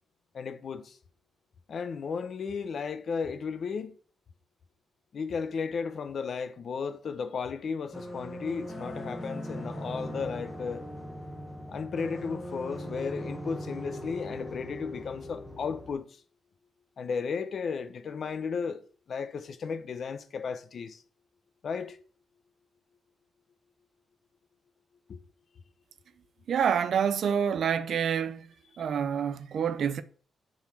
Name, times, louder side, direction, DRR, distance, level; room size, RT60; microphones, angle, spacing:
voice 1, 0.3-0.9 1.7-3.9 5.1-10.8 11.7-16.0 17.0-18.8 19.1-21.0 21.6-22.0 25.1-25.2, left 5 dB, 55° left, 0.8 m, -34 dB
sound 1, 7.9-15.9, equal, 5° left, 1.3 m, -39 dB
voice 2, 26.5-28.5 28.8-30.0, right 7 dB, 60° right, 0.6 m, -27 dB
7.1 x 4.0 x 6.2 m
cardioid pair, 130°, 0 cm